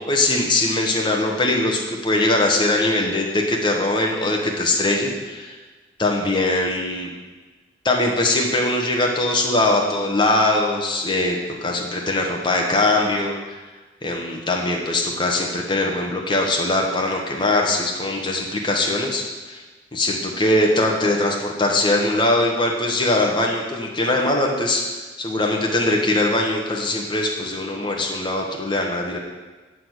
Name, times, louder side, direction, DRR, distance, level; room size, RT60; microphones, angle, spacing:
voice 1, 0.0-5.5 6.0-7.1 7.8-13.6 14.0-19.6 19.9-24.8 25.2-29.2, left 2 dB, 25° left, 0 dB, 1.2 m, -21 dB
7.7 x 6.9 x 8.0 m, 1.3 s
head